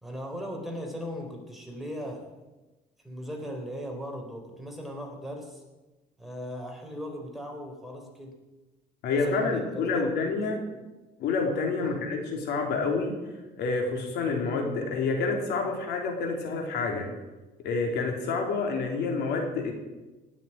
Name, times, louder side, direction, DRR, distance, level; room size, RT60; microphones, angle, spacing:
voice 1, 0.0-2.3 3.0-5.6 6.2-8.4 9.1-10.0 11.8-12.1, equal, ahead, 1 dB, 3.9 m, -38 dB
voice 2, 9.0-10.6 11.2-13.2 13.6-17.1 17.6-19.7, left 4 dB, 80° left, 2 dB, 3.5 m, -28 dB
18.0 x 7.6 x 8.7 m, 1.1 s
cardioid pair, 110°, 17 cm